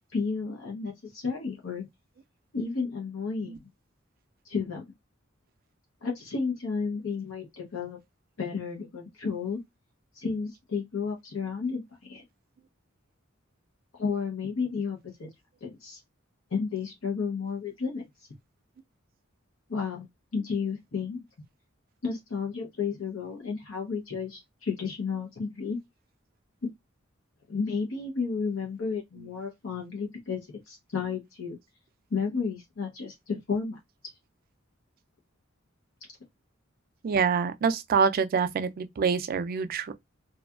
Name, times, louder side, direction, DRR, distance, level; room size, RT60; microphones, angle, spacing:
voice 1, 0.1-1.9 2.5-3.6 4.5-4.8 6.0-8.0 8.4-9.6 10.2-11.8 12.1-12.2 14.0-15.3 15.6-16.0 16.5-18.0 19.7-21.2 22.0-25.8 27.5-30.4 30.7-31.6 32.1-33.8, left 5 dB, 80° left, 0.7 m, -32 dB
voice 2, 37.0-39.9, right 6 dB, 45° right, 0.3 m, -26 dB
2.7 x 2.3 x 2.3 m
head